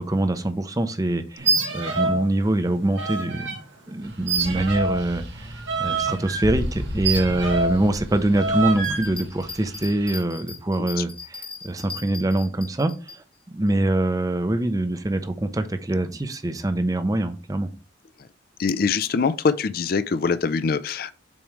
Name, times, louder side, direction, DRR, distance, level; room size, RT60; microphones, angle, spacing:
voice 1, 0.0-3.5 3.9-17.7, right 1 dB, 20° right, 0.5 m, -24 dB
sound 1, 1.4-2.3 2.5-3.6 4.3-7.8 8.4-9.1, right 3 dB, 75° right, 1.8 m, -26 dB
sound 2, 4.0-10.2, equal, 60° right, 1.1 m, -35 dB
Bell, 8.7-13.2 13.7-13.8, left 4 dB, 5° left, 1.1 m, -39 dB
voice 2, 18.6-21.1, left 5 dB, 50° left, 0.4 m, -23 dB
7.1 x 4.6 x 3.1 m
head